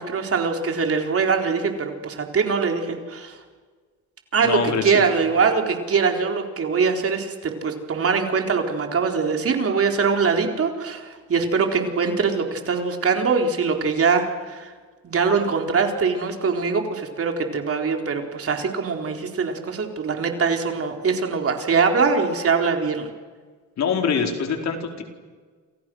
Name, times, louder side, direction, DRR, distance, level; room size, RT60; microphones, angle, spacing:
voice 1, 0.0-3.4 4.3-14.7 15.0-23.1, right 5 dB, 50° right, 3 dB, 4.1 m, -22 dB
voice 2, 4.4-5.1 23.8-25.0, left 6 dB, 60° left, 3 dB, 4.5 m, -24 dB
29.0 x 27.5 x 6.4 m, 1.5 s
cardioid pair, 90°, 30 cm